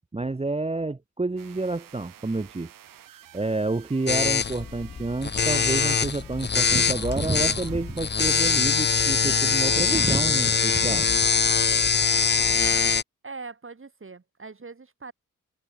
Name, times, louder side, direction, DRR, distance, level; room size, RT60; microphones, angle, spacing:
voice 1, 0.1-2.7 3.3-11.1, right 3 dB, 20° right, 1.0 m, -29 dB
sound 1, 1.4-8.6, right 11 dB, 85° right, 2.6 m, -49 dB
sound 2, 4.1-13.0, left 6 dB, 30° left, 0.7 m, -23 dB
voice 2, 13.2-15.1, right 4 dB, 40° right, 3.6 m, -41 dB
supercardioid pair, 45°, 33 cm